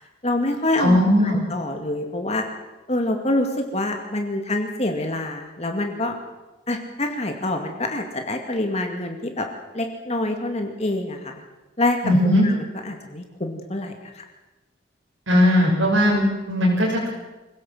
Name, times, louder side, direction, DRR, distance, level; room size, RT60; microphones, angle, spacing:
voice 1, 0.2-2.5 2.9-6.2 6.7-9.5 9.7-11.4 11.8-12.0 12.2-14.2, left 2 dB, 35° left, 4 dB, 2.3 m, -26 dB
voice 2, 0.8-1.3 12.0-12.4 15.3-17.1, left 1 dB, 85° right, -4 dB, 6.6 m, -18 dB
25.0 x 17.5 x 7.9 m, 1.1 s
head